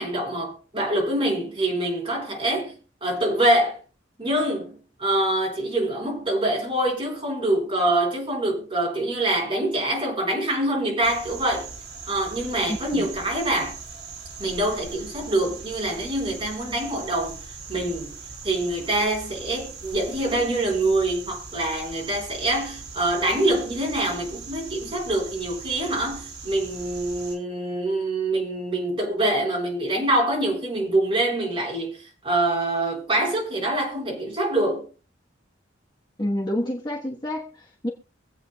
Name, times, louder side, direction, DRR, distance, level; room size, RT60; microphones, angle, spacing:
voice 1, 0.0-3.8 4.2-11.7 12.1-13.8 14.4-17.4 17.7-18.2 18.4-34.9, right 1 dB, 25° right, 4.2 m, -25 dB
sound 1, 11.0-27.3, right 4 dB, 60° right, 4.5 m, -40 dB
voice 2, 12.7-13.1 36.2-37.9, left 1 dB, 20° left, 1.2 m, -29 dB
24.5 x 8.4 x 2.3 m
head